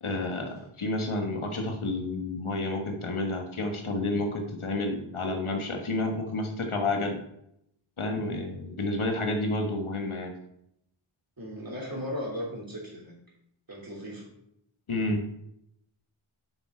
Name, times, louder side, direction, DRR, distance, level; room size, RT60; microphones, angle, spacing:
voice 1, 0.0-7.2 8.0-10.3 14.9-15.2, left 2 dB, 90° left, 3 dB, 1.3 m, -30 dB
voice 2, 11.4-13.1 13.7-14.3, equal, 45° right, -3 dB, 3.1 m, -36 dB
6.9 x 5.9 x 4.3 m, 0.78 s
wide cardioid pair, 50°, 48 cm